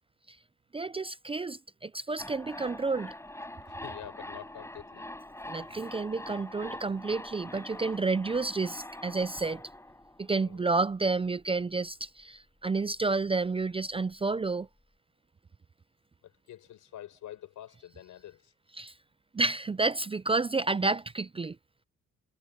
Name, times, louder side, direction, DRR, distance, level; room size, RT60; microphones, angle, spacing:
voice 1, 0.7-3.1 5.5-9.6 10.2-14.7 18.8-18.9 19.3-21.6, right 3 dB, 20° right, 0.5 m, -30 dB
sound 1, 2.2-11.0 11.2-11.3, left 1 dB, 10° left, 8.0 m, -44 dB
voice 2, 3.7-5.1 10.3-10.6 16.2-18.5, left 12 dB, 75° left, 6.6 m, -47 dB
cardioid pair, 90°, 30 cm